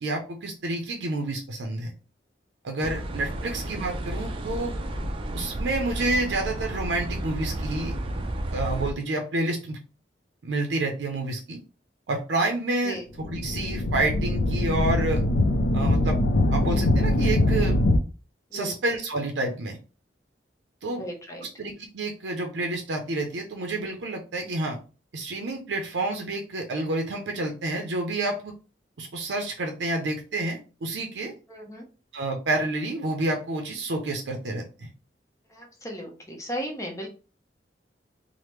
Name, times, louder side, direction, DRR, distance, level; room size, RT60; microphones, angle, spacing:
voice 1, 0.0-1.9 2.6-4.7 5.3-7.9 8.5-9.8 10.4-11.6 12.1-13.0 13.3-15.3 15.7-16.2 16.5-17.8 18.5-19.8 20.8-21.0 21.6-24.8 25.1-28.5 29.0-31.3 32.1-34.9, right 2 dB, 90° right, 3 dB, 0.5 m, -29 dB
sound 1, 2.8-8.9, right 1 dB, 30° right, 0.4 m, -32 dB
sound 2, 13.2-18.0, left 1 dB, 80° left, 0.4 m, -22 dB
voice 2, 21.0-21.5 31.5-31.8 35.5-37.1, equal, 20° left, 1 dB, 0.7 m, -36 dB
3.3 x 2.0 x 3.0 m, 0.34 s
head